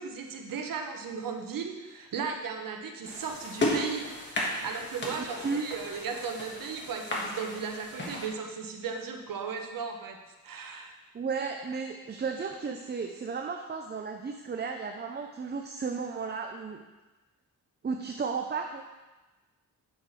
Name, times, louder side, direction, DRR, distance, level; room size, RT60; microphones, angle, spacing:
voice 1, 0.0-10.2 10.4-10.9, right 5 dB, 80° right, 3 dB, 1.0 m, -36 dB
sound 1, 3.0-8.3, left 1 dB, 35° left, 1.5 m, -34 dB
voice 2, 11.1-16.8 17.8-18.8, right 5 dB, 30° right, 3 dB, 0.5 m, -34 dB
8.9 x 6.2 x 3.2 m, 1.2 s
cardioid pair, 100°, 33 cm